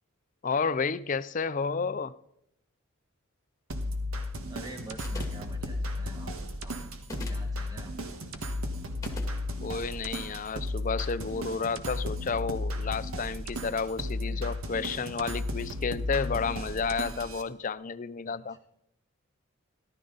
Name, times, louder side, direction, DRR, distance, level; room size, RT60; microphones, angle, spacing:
voice 1, 0.4-2.1 9.6-18.6, left 5 dB, 40° left, 0.5 m, -31 dB
sound 1, 3.7-17.4, left 1 dB, 80° right, 1.5 m, -34 dB
voice 2, 4.5-6.8 7.2-8.2 14.2-14.6 18.3-18.6, right 1 dB, 20° right, 1.9 m, -47 dB
sound 2, 5.0-5.5 7.0-7.5 9.0-9.3, left 2 dB, 15° left, 2.1 m, -41 dB
17.5 x 12.0 x 4.0 m
head